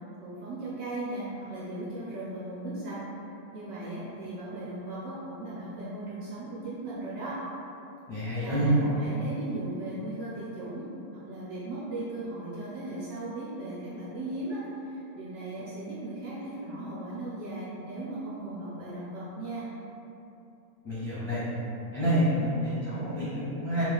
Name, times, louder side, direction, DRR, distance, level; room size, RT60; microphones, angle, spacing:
voice 1, 0.2-3.0 3.5-7.4 8.4-10.9 11.1-19.7, right 2 dB, 65° right, -8 dB, 1.3 m, -37 dB
voice 2, 8.1-8.7 20.8-21.4 21.9-23.8, equal, 20° left, -13 dB, 0.8 m, -28 dB
3.6 x 3.2 x 3.5 m, 2.8 s
omnidirectional pair, 2.3 m